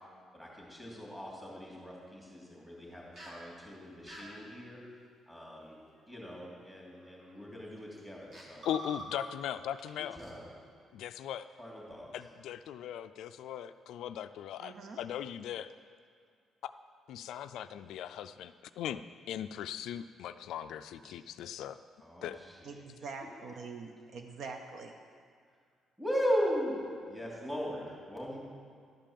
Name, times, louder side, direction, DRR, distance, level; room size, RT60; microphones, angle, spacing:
voice 1, 0.3-4.8 5.3-8.7 10.0-10.5 11.6-12.1 22.0-22.6 26.0-28.4, equal, 10° right, -5 dB, 2.9 m, -38 dB
sound 1, 3.2-3.4 4.1-4.3 6.0-6.2 7.0-7.3 8.0-8.1 8.3-9.5 9.8-9.9 10.2-10.3, right 1 dB, 40° right, 2.1 m, -46 dB
voice 2, 8.7-10.2 10.9-11.5 12.1-15.7 16.6-16.7 17.1-19.0 19.3-21.8 22.2-22.4, left 10 dB, 80° left, 11 dB, 0.3 m, -39 dB
voice 3, 14.6-15.0 21.0-21.1 22.6-24.9, right 4 dB, 55° right, 4 dB, 0.8 m, -44 dB
12.0 x 5.2 x 7.4 m, 2.2 s
cardioid pair, 135°, 0 cm